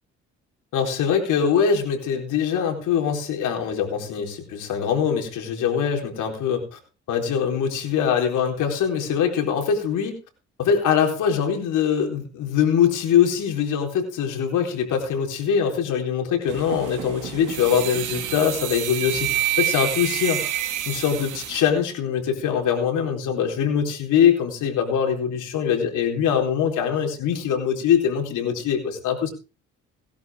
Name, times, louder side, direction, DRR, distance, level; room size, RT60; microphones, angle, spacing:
voice 1, 0.7-6.8 7.1-10.2 10.6-20.6 20.9-29.3, left 8 dB, 85° left, 2 dB, 4.2 m, -23 dB
sound 1, 16.5-21.7, right 12 dB, 80° right, 2.7 m, -28 dB
18.0 x 12.0 x 3.6 m, 0.33 s
cardioid pair, 90°, 30 cm